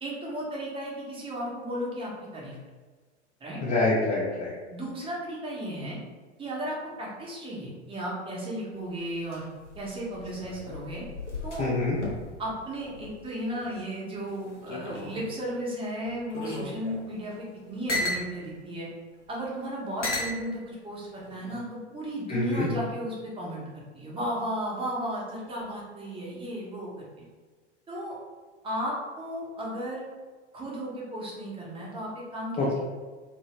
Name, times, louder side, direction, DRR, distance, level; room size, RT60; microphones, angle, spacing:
voice 1, 0.0-2.6 3.4-3.6 4.7-6.0 6.4-9.5 9.7-11.0 11.4-11.7 12.4-18.9 19.3-23.6 23.9-27.0 27.9-28.2 28.6-30.1 30.5-32.8, equal, 15° right, -4 dB, 0.9 m, -34 dB
voice 2, 3.6-4.6 11.6-12.0 22.3-22.7 32.6-32.8, left 2 dB, 20° left, -7 dB, 0.5 m, -26 dB
sound 1, 8.7-13.8 14.2-15.4 16.0-18.3 19.1-19.2 20.0-20.4 21.2-21.6, left 2 dB, 85° left, 0.8 m, -36 dB
2.7 x 2.7 x 3.1 m, 1.4 s
figure-of-eight pair, 85°, 35 cm